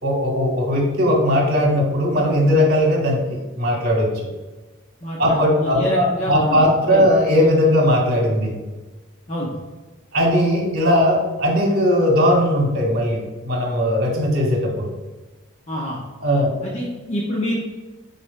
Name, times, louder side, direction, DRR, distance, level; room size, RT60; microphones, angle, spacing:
voice 1, 0.0-4.1 5.2-8.5 10.1-14.9 16.2-16.5, equal, 45° right, -1 dB, 1.7 m, -18 dB
voice 2, 5.0-6.6 6.9-7.1 9.3-9.6 15.7-16.0 16.6-17.6, equal, 35° left, -4 dB, 0.9 m, -26 dB
11.0 x 4.3 x 2.2 m, 1.2 s
head